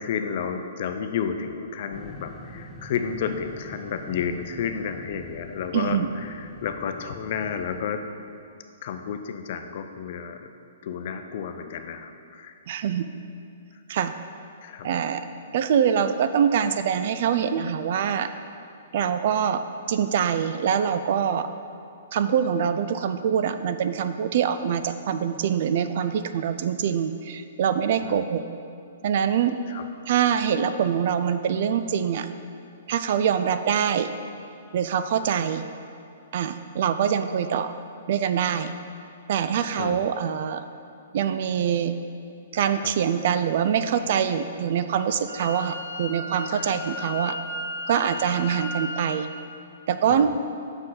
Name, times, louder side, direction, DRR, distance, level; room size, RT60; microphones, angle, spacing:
voice 1, 0.0-8.0 8.8-10.5 10.8-12.6 14.6-14.9 28.0-28.2 29.7-29.9 39.8-40.0 42.7-42.9 46.5-46.7 50.1-50.3, left 7 dB, 50° left, 7 dB, 0.5 m, -31 dB
sound 1, 1.9-7.9, right 1 dB, 5° right, 0.8 m, -44 dB
voice 2, 5.7-6.1 12.7-13.1 13.9-14.1 14.8-15.2 15.5-18.3 18.9-21.5 22.1-28.4 29.0-29.5 30.1-32.3 32.9-34.1 34.7-35.7 36.3-37.7 38.1-38.7 39.3-40.6 41.1-41.9 42.5-47.4 47.9-49.3 49.9-50.3, right 8 dB, 55° right, 10 dB, 0.4 m, -24 dB
Wind instrument woodwind instrument, 45.3-49.3, left 1 dB, 85° right, 0.9 m, -35 dB
7.4 x 6.2 x 3.9 m, 2.5 s
hypercardioid pair, 120°, 0 cm